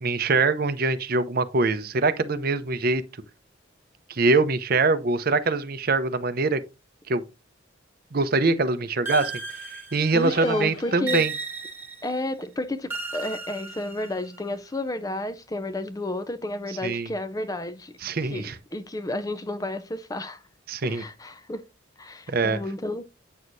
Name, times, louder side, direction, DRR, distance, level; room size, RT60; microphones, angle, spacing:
voice 1, 0.0-3.0 4.1-6.6 7.1-7.2 8.1-9.7 9.9-11.3 16.7-17.1 18.0-18.6 20.7-21.0 22.3-22.6, right 3 dB, 45° right, 0.6 m, -23 dB
sound 1, 9.1-10.4 11.1-12.2 12.9-14.4, right 4 dB, 10° right, 1.3 m, -35 dB
voice 2, 10.1-11.3 12.0-17.9 18.3-20.4 20.8-21.6 22.0-23.0, left 1 dB, 15° left, 0.4 m, -31 dB
sound 2, 10.2-11.6, left 3 dB, 75° left, 1.2 m, -39 dB
8.4 x 6.3 x 2.6 m
head